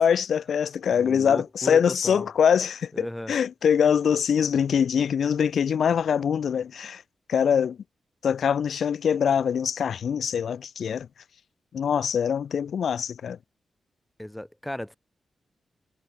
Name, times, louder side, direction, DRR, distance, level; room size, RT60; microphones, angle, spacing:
voice 1, 0.0-7.0 7.3-7.8 8.2-11.1 11.7-13.4, left 7 dB, 80° left, 0.3 m, -23 dB
voice 2, 0.9-2.3 2.9-3.3 14.2-15.0, left 1 dB, 5° left, 1.6 m, -35 dB
cardioid pair, 75°, 0 cm